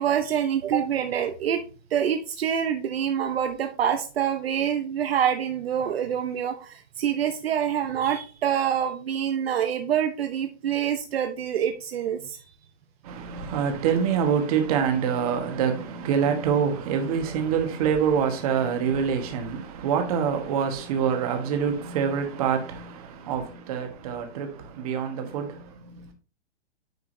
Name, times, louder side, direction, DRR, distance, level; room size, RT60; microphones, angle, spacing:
voice 1, 0.0-1.6 1.9-12.4, right 9 dB, 60° right, 0.8 m, -26 dB
voice 2, 13.0-26.1, right 7 dB, 35° right, 1.3 m, -26 dB
9.3 x 4.7 x 2.6 m
hypercardioid pair, 170°, 34 cm